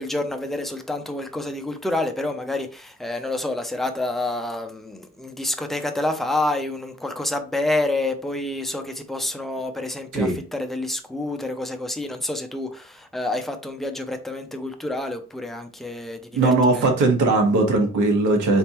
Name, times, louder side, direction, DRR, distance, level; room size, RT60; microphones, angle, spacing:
voice 1, 0.0-17.1, left 2 dB, ahead, 0.4 m, -28 dB
voice 2, 16.3-18.6, right 3 dB, 70° right, 1.2 m, -19 dB
4.2 x 3.4 x 2.9 m
cardioid pair, 165°, 31 cm